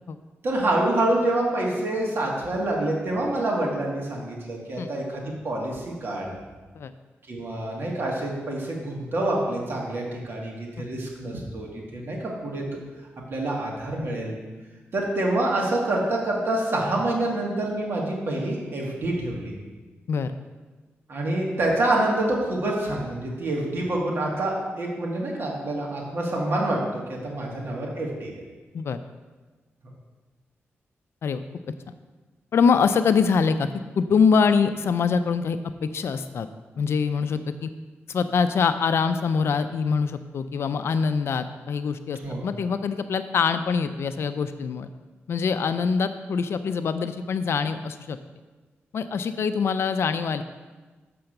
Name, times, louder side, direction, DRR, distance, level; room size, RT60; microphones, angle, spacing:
voice 1, 0.4-6.3 7.3-12.6 13.3-14.4 14.9-19.5 21.1-28.4 42.2-42.4, right 1 dB, 55° right, -2 dB, 1.8 m, -27 dB
voice 2, 32.5-33.7 34.0-36.5 36.8-37.7 38.1-44.9 45.3-48.2 48.9-50.4, left 5 dB, 65° left, 10 dB, 0.4 m, -24 dB
6.8 x 5.8 x 6.6 m, 1.3 s
wide cardioid pair, 130°, 5 cm